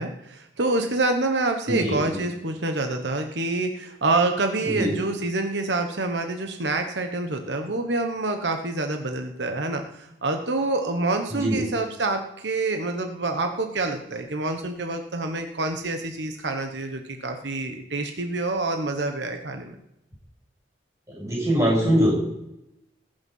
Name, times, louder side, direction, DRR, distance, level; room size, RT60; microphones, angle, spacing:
voice 1, 0.0-19.7, right 2 dB, 85° right, 5 dB, 1.2 m, -27 dB
voice 2, 1.7-2.2 4.6-4.9 11.3-11.6 21.2-22.1, equal, 15° right, -4 dB, 6.8 m, -22 dB
20.5 x 7.0 x 5.5 m, 0.85 s
head